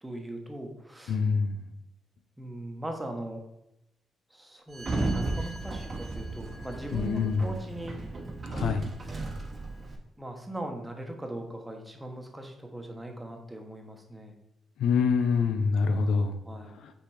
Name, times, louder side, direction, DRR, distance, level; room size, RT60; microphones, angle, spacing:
voice 1, 0.0-1.2 2.4-3.4 4.3-8.0 9.0-9.2 10.2-14.3 16.5-16.8, right 1 dB, 10° right, 3 dB, 1.1 m, -39 dB
voice 2, 1.1-1.6 6.9-7.5 8.5-8.9 14.8-16.4 16.8-16.9, left 5 dB, 85° left, 7 dB, 0.6 m, -25 dB
Sliding door, 4.7-10.0, right 2 dB, 35° right, 1.0 m, -34 dB
5.9 x 4.1 x 4.9 m, 0.85 s
cardioid pair, 105°, 0 cm